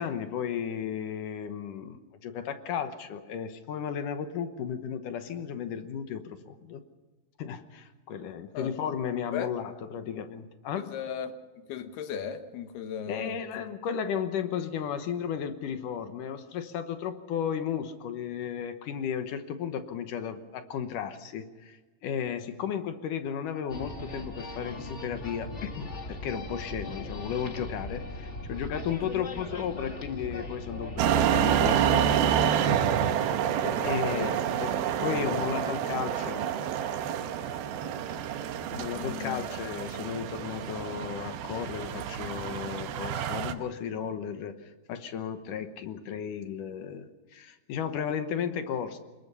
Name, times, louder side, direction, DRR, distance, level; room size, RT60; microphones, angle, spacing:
voice 1, 0.0-6.8 7.4-10.9 13.1-32.2 33.8-34.7 35.0-36.4 38.7-49.0, left 8 dB, 65° left, 9 dB, 2.4 m, -34 dB
voice 2, 10.8-11.4 11.7-13.4 33.5-34.4 35.0-35.4 39.0-39.4, left 7 dB, 85° left, 8 dB, 3.4 m, -36 dB
sound 1, 23.7-32.0, left 2 dB, 35° left, 1.1 m, -39 dB
sound 2, 31.0-43.5, right 9 dB, 80° right, 2.9 m, -28 dB
24.0 x 21.0 x 5.6 m, 1.3 s
omnidirectional pair, 4.4 m